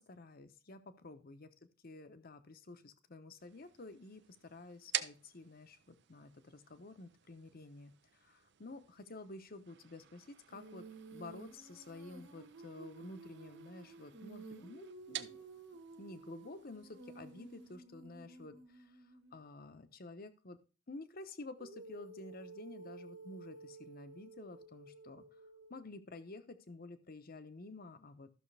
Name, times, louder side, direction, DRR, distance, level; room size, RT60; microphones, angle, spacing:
voice 1, 0.0-1.5 1.8-10.9 11.1-15.4 16.0-19.0 19.3-20.6 20.9-25.2 25.7-28.3, left 2 dB, 50° left, 10 dB, 0.9 m, -51 dB
sound 1, 3.4-17.8, right 11 dB, 60° right, 0.6 m, -49 dB
Female singing, 10.5-19.4 21.6-25.8, right 3 dB, 80° right, 1.8 m, -54 dB
13.5 x 6.3 x 3.3 m, 0.33 s
head